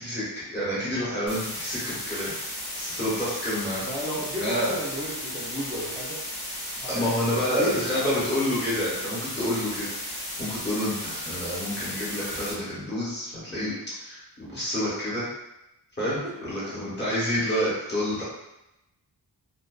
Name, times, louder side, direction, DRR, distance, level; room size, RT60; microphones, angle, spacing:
voice 1, 0.0-2.3 2.8-3.8 4.4-4.7 6.9-9.9 10.4-13.7 14.0-15.3 16.0-18.2, equal, 25° left, -9 dB, 1.0 m, -28 dB
sound 1, 1.3-12.5, left 1 dB, 50° left, 0.9 m, -35 dB
voice 2, 3.8-6.3 6.8-7.2 7.5-8.2 16.2-16.8, equal, 20° right, -9 dB, 0.5 m, -34 dB
2.5 x 2.2 x 2.2 m, 0.91 s
wide cardioid pair, 125°, 40 cm